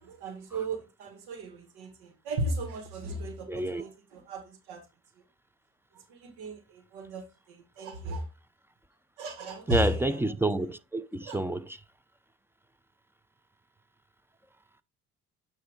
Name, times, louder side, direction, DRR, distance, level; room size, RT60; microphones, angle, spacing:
voice 1, 0.0-4.8 5.9-8.3 9.2-10.3 11.2-11.4, right 1 dB, 85° right, 1.5 m, -36 dB
voice 2, 3.5-3.8 9.7-11.8, right 2 dB, 5° right, 0.5 m, -28 dB
8.4 x 2.8 x 4.9 m
supercardioid pair, 85°, 37 cm